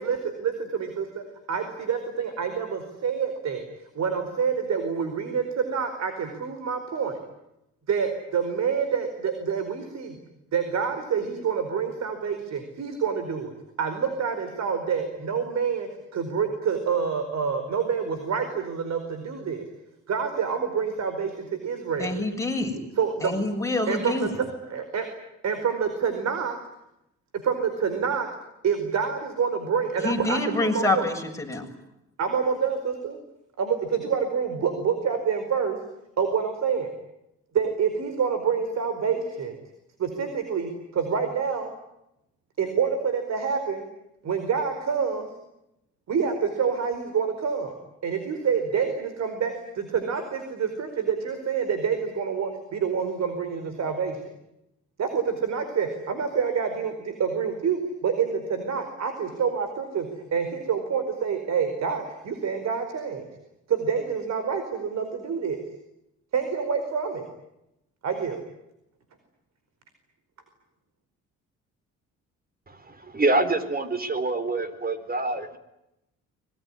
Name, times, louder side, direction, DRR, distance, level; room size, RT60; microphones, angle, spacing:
voice 1, 0.0-3.6 3.9-7.2 7.9-10.2 10.5-13.5 13.8-19.6 20.1-22.2 23.0-23.3 23.9-25.1 25.4-26.6 27.4-28.3 28.6-31.0 32.2-33.2 33.6-35.8 36.2-36.9 37.5-39.5 40.0-41.7 42.6-43.8 44.2-45.3 46.1-47.7 48.0-54.2 55.0-63.2 63.7-65.6 66.3-67.2 68.0-68.4, right 6 dB, 60° right, 8 dB, 4.8 m, -27 dB
voice 2, 22.0-22.8 23.2-24.3 30.0-31.7, left 2 dB, 10° left, 2 dB, 7.7 m, -26 dB
voice 3, 72.7-75.6, right 2 dB, 30° right, 12 dB, 4.1 m, -26 dB
26.0 x 22.5 x 9.9 m, 0.87 s
cardioid pair, 90°, 30 cm